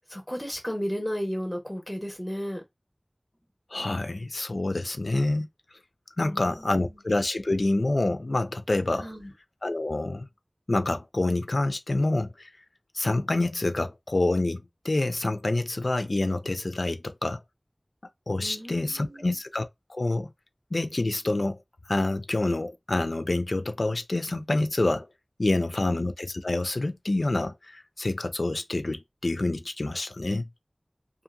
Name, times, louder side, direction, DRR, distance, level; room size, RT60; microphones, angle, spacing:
voice 1, 0.1-2.6 6.2-7.0 9.0-9.3 18.4-19.4, equal, 10° left, 1.3 m, -34 dB
voice 2, 3.7-5.5 6.2-9.1 9.6-10.3 10.7-12.5 12.9-17.4 18.3-20.3 20.7-21.6 21.9-25.1 25.4-30.5, left 2 dB, 80° left, 0.3 m, -27 dB
2.7 x 2.4 x 2.5 m
wide cardioid pair, 45°, 0 cm